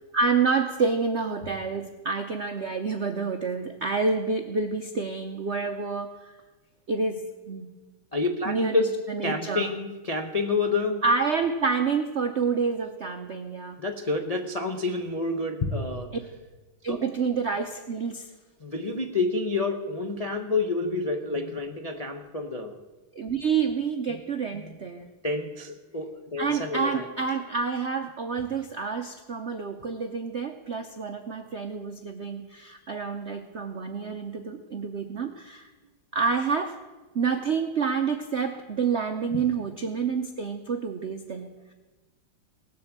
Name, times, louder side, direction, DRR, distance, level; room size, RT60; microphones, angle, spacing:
voice 1, 0.1-6.3 6.9-7.7 8.5-9.7 11.0-13.8 16.8-18.3 23.1-25.1 26.4-35.7 36.1-36.8 37.1-41.7, right 5 dB, 65° right, 6 dB, 0.7 m, -28 dB
voice 2, 8.1-8.9 9.2-11.0 13.8-16.1 16.9-17.0 18.6-22.8 24.1-24.2 24.5-24.8 25.2-27.1 39.3-39.4, left 3 dB, 40° left, 3 dB, 0.5 m, -29 dB
18.0 x 7.9 x 7.3 m, 1.2 s
omnidirectional pair, 2.2 m